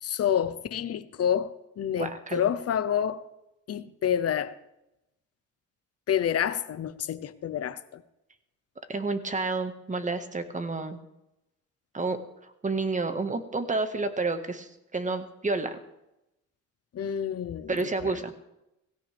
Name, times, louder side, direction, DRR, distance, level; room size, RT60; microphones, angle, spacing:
voice 1, 0.0-3.2 3.7-4.5 6.1-8.0 16.9-18.2, left 9 dB, 55° left, 0.9 m, -28 dB
voice 2, 2.0-2.5 8.9-11.0 11.9-12.2 12.4-15.8 17.7-18.3, right 3 dB, 25° right, 1.7 m, -30 dB
17.5 x 16.5 x 3.5 m
cardioid pair, 90°, 30 cm